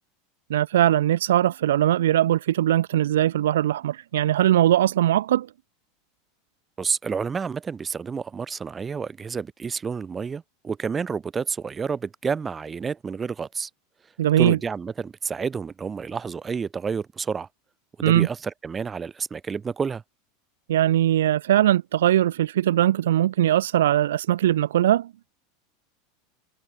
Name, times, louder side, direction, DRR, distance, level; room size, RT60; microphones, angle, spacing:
voice 1, 0.5-5.5 14.2-14.6 18.0-18.3 20.7-25.1, right 12 dB, 85° right, 2.8 m, -20 dB
voice 2, 6.8-13.7 14.4-17.5 18.0-20.0, right 5 dB, 20° right, 7.7 m, -29 dB
supercardioid pair, 115°, 0 cm